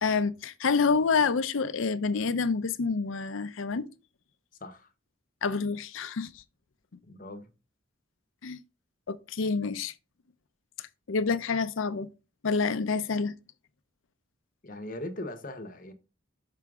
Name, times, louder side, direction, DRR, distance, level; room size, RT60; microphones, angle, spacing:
voice 1, 0.0-3.9 5.4-6.3 8.4-8.6 9.1-9.9 11.1-12.1 12.4-13.3, left 4 dB, 80° left, 0.6 m, -27 dB
voice 2, 7.0-7.5 14.6-15.9, left 1 dB, 45° left, 0.8 m, -39 dB
6.0 x 5.7 x 3.6 m
head